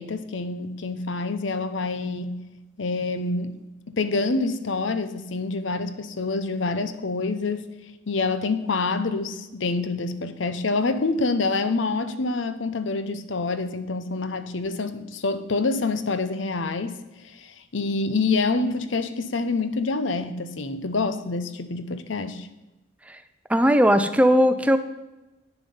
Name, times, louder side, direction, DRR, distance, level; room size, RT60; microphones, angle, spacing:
voice 1, 0.0-2.4 2.8-3.6 3.9-7.6 8.1-17.0 17.2-22.5, left 3 dB, 85° left, 11 dB, 0.8 m, -27 dB
voice 2, 23.5-24.8, equal, 5° right, 10 dB, 0.5 m, -18 dB
9.7 x 7.0 x 5.5 m, 1.0 s
head